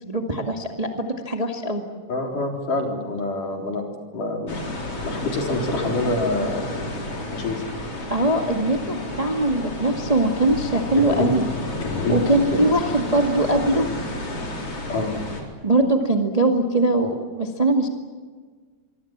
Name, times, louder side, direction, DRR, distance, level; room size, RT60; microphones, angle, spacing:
voice 1, 0.0-1.8 8.1-11.5 12.1-13.9 15.6-17.9, right 2 dB, 45° right, 3 dB, 0.5 m, -21 dB
voice 2, 2.1-3.8 4.1-4.6 5.0-6.8 7.3-7.7 11.0-11.3 11.8-12.2 12.5-12.6 14.9-15.2, left 2 dB, 50° left, 2 dB, 5.2 m, -26 dB
sound 1, 4.5-15.4, left 1 dB, 35° left, 4.9 m, -31 dB
25.0 x 24.5 x 7.5 m, 1.5 s
omnidirectional pair, 4.8 m